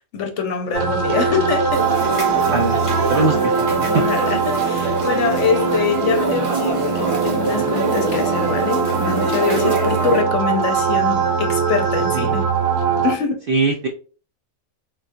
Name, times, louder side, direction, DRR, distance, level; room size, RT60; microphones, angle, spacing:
voice 1, 0.1-1.8 3.3-3.5 3.9-12.5 13.0-13.4, left 6 dB, 65° left, 0.9 m, -24 dB
sound 1, 0.7-13.1, right 5 dB, 55° right, 0.9 m, -21 dB
sound 2, 1.7-10.2, right 2 dB, 30° right, 0.6 m, -25 dB
voice 2, 2.5-2.8 3.1-3.5 3.8-4.0 12.1-12.3 13.5-13.9, right 3 dB, 75° right, 0.5 m, -20 dB
3.7 x 2.3 x 2.5 m
omnidirectional pair, 1.5 m